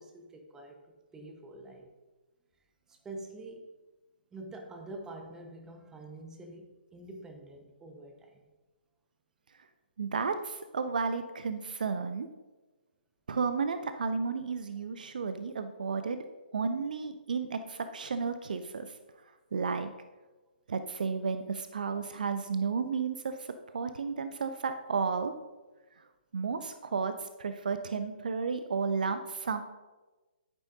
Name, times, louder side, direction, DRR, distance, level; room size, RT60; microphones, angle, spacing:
voice 1, 0.0-1.9 2.9-3.7 4.3-8.5 28.4-28.5, right 2 dB, 10° right, 3 dB, 1.0 m, -46 dB
voice 2, 10.0-12.3 13.3-16.2 16.5-18.9 19.5-19.9 20.7-23.5 23.7-25.3 26.3-29.6, right 5 dB, 55° right, 9 dB, 0.6 m, -32 dB
10.0 x 9.0 x 2.7 m, 1.2 s
figure-of-eight pair, 130°, 5 cm